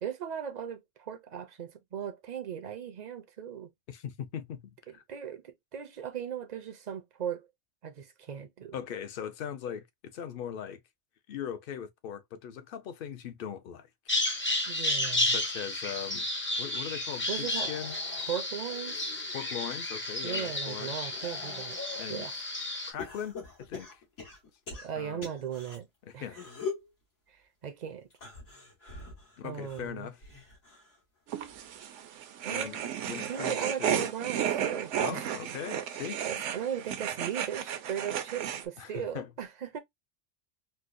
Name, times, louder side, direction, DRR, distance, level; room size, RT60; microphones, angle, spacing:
voice 1, 0.0-3.7 4.9-7.5 7.8-8.8 14.7-15.4 17.3-17.7 18.3-19.0 20.2-21.8 22.1-22.4 24.7-25.9 26.1-26.4 27.3-28.1 29.4-30.1 32.4-32.9 33.3-35.3 36.2-39.8, right 8 dB, 50° right, 0.5 m, -38 dB
voice 2, 3.9-5.0 8.7-10.8 11.3-13.9 15.2-16.3 16.6-17.9 19.3-20.9 22.0-22.3 22.9-24.0 25.0-25.3 26.1-26.4 29.4-30.2 32.5-34.0 35.0-36.2 38.8-39.3, left 8 dB, 60° left, 0.6 m, -40 dB
Bird vocalization bird call bird song, 14.1-22.9, left 1 dB, 15° left, 0.4 m, -32 dB
sound 1, 17.3-19.7 20.2-22.1 23.0-25.8 26.3-26.9 28.1-31.0 31.3-31.8 32.9-33.0, left 4 dB, 85° left, 2.3 m, -44 dB
sound 2, 31.3-38.6, right 9 dB, 80° right, 0.9 m, -33 dB
4.3 x 2.0 x 2.4 m
omnidirectional pair, 1.2 m